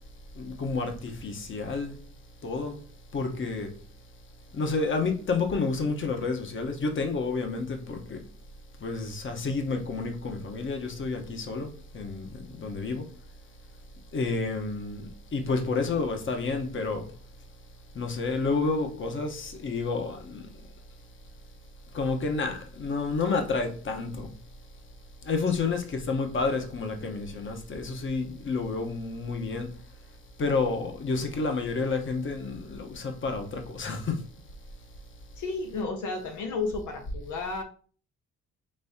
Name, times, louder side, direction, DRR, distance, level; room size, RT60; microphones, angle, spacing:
voice 1, 0.3-2.0 2.4-2.8 3.1-3.9 4.5-8.2 8.8-13.1 14.1-17.2 17.9-20.5 21.9-24.4 25.2-29.8 30.4-34.3, left 4 dB, 40° left, 1.1 m, -30 dB
voice 2, 35.4-37.6, left 3 dB, 80° left, 0.9 m, -32 dB
5.4 x 3.4 x 2.7 m
cardioid pair, 90°, 30 cm